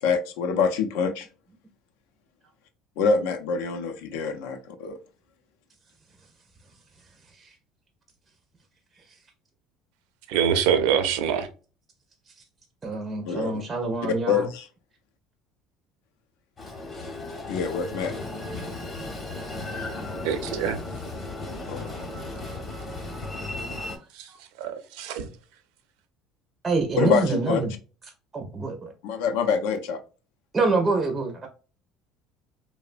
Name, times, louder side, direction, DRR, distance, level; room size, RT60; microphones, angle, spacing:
voice 1, 0.0-1.3 3.0-5.0 13.3-13.6 14.3-14.7 17.5-18.1 21.7-21.9 27.0-27.6 29.0-30.0, left 5 dB, 90° left, 0.5 m, -25 dB
voice 2, 10.3-11.5 20.2-20.8 24.1-24.3 24.6-25.3, right 8 dB, 80° right, 0.5 m, -25 dB
voice 3, 12.8-14.5 24.3-24.4 26.6-27.7 28.3-28.9 30.5-31.5, right 3 dB, 15° right, 0.4 m, -26 dB
Train, 16.6-24.0, left 2 dB, 20° left, 0.7 m, -35 dB
3.1 x 2.1 x 2.4 m
cardioid pair, 160°, 0 cm